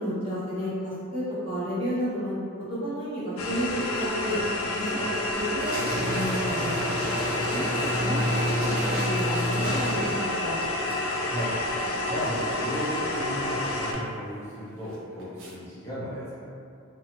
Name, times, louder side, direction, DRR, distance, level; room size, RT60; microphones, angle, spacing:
voice 1, 0.0-4.4 4.7-6.8 7.5-10.6, equal, 25° right, -10 dB, 0.8 m, -32 dB
sound 1, 3.4-13.9, left 2 dB, 80° left, 0.4 m, -29 dB
sound 2, 5.6-10.4, equal, 85° right, 1.0 m, -29 dB
sound 3, 7.0-15.6, right 1 dB, 60° right, 0.5 m, -47 dB
voice 2, 11.3-11.6 12.1-16.5, equal, 15° left, -12 dB, 0.5 m, -34 dB
2.9 x 2.3 x 2.9 m, 2.5 s
head